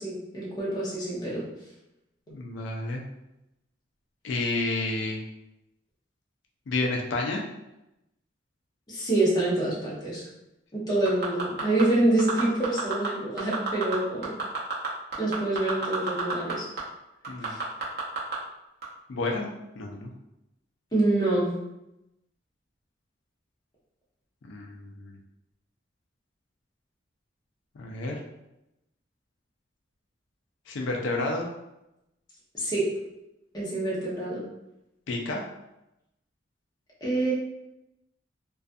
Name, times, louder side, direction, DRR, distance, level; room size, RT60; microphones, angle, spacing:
voice 1, 0.0-1.5 8.9-10.3 10.7-14.4 15.2-16.7 17.5-17.6 20.9-21.5 32.5-32.9 33.5-34.4 37.0-37.3, right 2 dB, 20° left, -6 dB, 0.7 m, -26 dB
voice 2, 2.3-3.0 4.2-5.2 6.7-7.4 17.3-17.6 19.1-20.1 24.5-25.2 27.8-28.2 30.7-31.5 35.1-35.4, left 2 dB, 70° left, 0 dB, 0.4 m, -30 dB
sound 1, 11.1-11.8 12.2-13.1 13.4-14.0 14.2-16.5 16.8-16.9 17.2-18.4 18.8-18.9, right 5 dB, 55° right, 0.7 m, -29 dB
2.4 x 2.2 x 2.5 m, 0.90 s
head